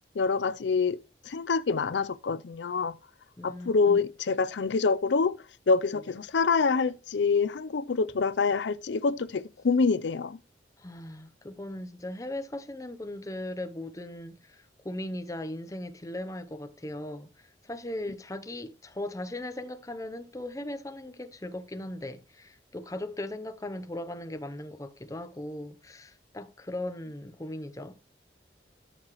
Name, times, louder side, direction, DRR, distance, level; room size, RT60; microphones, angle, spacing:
voice 1, 0.2-1.0 1.2-2.9 3.4-5.4 5.7-10.4, left 4 dB, 75° left, 0.5 m, -26 dB
voice 2, 3.4-4.0 5.9-6.0 10.8-28.0, left 1 dB, 20° left, 0.6 m, -38 dB
13.5 x 5.8 x 3.0 m
head